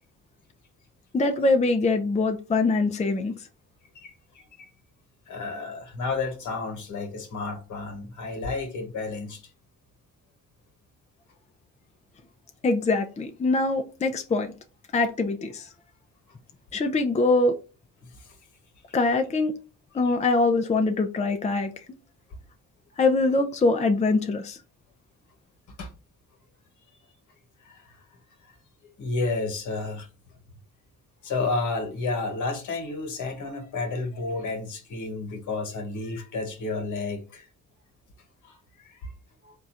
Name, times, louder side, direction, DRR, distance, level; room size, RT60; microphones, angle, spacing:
voice 1, 1.1-3.3 12.6-14.5 14.9-15.7 16.7-17.6 18.9-19.5 19.9-21.7 23.0-24.6, left 3 dB, 20° left, 0.6 m, -23 dB
voice 2, 3.9-4.7 5.3-9.4 18.0-18.4 25.8-25.9 27.6-28.0 28.4-28.5 29.0-30.1 31.2-37.5 38.4-39.1 39.4-39.5, left 3 dB, 65° left, 1.3 m, -31 dB
3.9 x 2.4 x 4.3 m
supercardioid pair, 70°, 32 cm